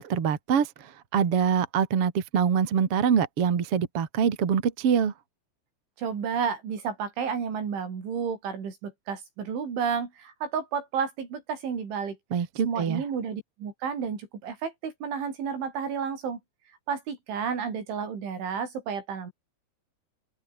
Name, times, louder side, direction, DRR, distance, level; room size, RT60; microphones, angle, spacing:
voice 1, 0.0-5.1 12.3-13.0, right 7 dB, 45° right, 2.1 m, -25 dB
voice 2, 6.0-12.2 12.6-16.4 16.9-19.3, right 6 dB, 65° right, 7.4 m, -31 dB
open air
omnidirectional pair, 5.8 m